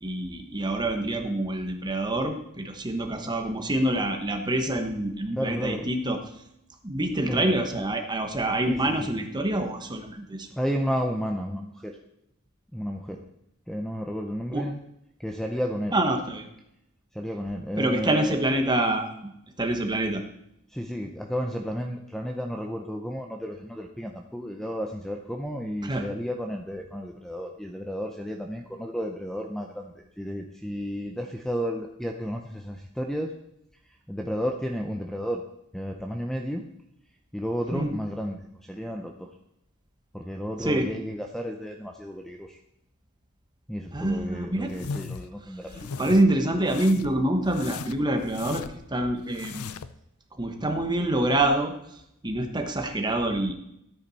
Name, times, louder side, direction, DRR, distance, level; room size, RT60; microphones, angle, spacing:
voice 1, 0.0-6.2 6.8-10.5 14.5-14.6 15.9-16.5 17.8-19.3 19.6-20.2 25.8-26.1 37.7-37.9 40.6-40.9 43.9-44.7 46.0-48.6 48.9-49.7 50.4-51.7 52.2-53.5, right 1 dB, 20° right, 5 dB, 1.2 m, -26 dB
voice 2, 5.3-5.9 7.3-7.5 8.7-9.1 10.6-11.9 12.7-13.2 13.7-14.8 15.2-15.9 17.1-18.4 20.7-33.3 34.1-35.4 35.7-36.6 37.3-39.3 40.1-42.6 43.7-45.9, equal, ahead, 3 dB, 0.7 m, -32 dB
sound 1, 44.7-45.3 45.7-46.2 46.7-47.2 47.5-48.9 49.3-50.0, left 5 dB, 85° left, 0.5 m, -37 dB
13.5 x 8.7 x 4.2 m, 0.79 s
head